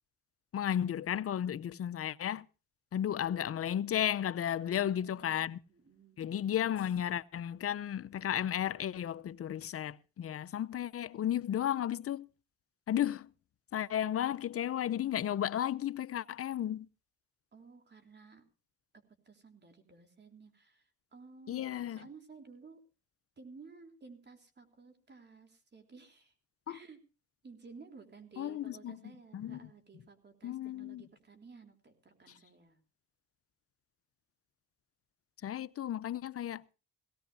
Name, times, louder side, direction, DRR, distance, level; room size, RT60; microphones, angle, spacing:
voice 1, 0.5-2.5 2.9-5.6 6.2-12.3 12.9-13.3 13.7-16.9 21.5-22.1 26.7-26.8 28.4-29.0 29.3-29.6 30.4-31.0 35.4-36.6, left 10 dB, 50° left, 0.7 m, -34 dB
voice 2, 4.6-6.3 17.5-18.4 19.3-22.8 23.4-26.3 26.7-27.0 27.4-32.8, right 4 dB, 35° right, 3.5 m, -55 dB
18.0 x 17.5 x 2.7 m
cardioid pair, 90°, 30 cm